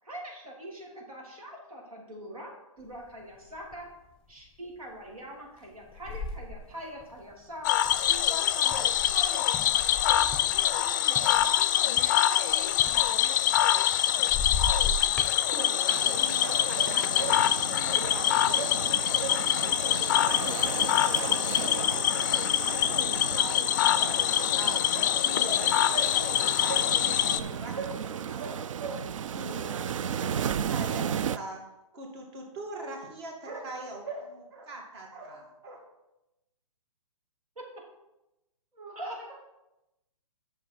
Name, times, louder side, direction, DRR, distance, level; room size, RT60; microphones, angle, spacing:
voice 1, 0.0-3.9 4.3-7.7 8.1-10.3 10.6-11.5 11.8-13.8 37.6-37.7 38.9-39.2, equal, 85° right, -2 dB, 2.9 m, -43 dB
sound 1, 2.9-3.0 3.4-3.9 4.5-4.7 5.6-10.9 11.2-14.0 14.3-15.4, left 4 dB, 5° left, 0.7 m, -36 dB
Cricket / Frog, 7.6-27.4, left 11 dB, 35° left, 0.4 m, -25 dB
voice 2, 15.5-19.4 19.7-26.9 27.3-29.0 29.3-31.6 31.9-35.8, right 2 dB, 50° right, 1 dB, 2.5 m, -40 dB
sound 2, 15.9-31.4, right 8 dB, 65° right, 0.4 m, -35 dB
voice 3, 38.7-39.3, right 2 dB, 20° right, -2 dB, 1.9 m, -47 dB
8.7 x 6.6 x 4.4 m, 0.95 s
hypercardioid pair, 140°, 18 cm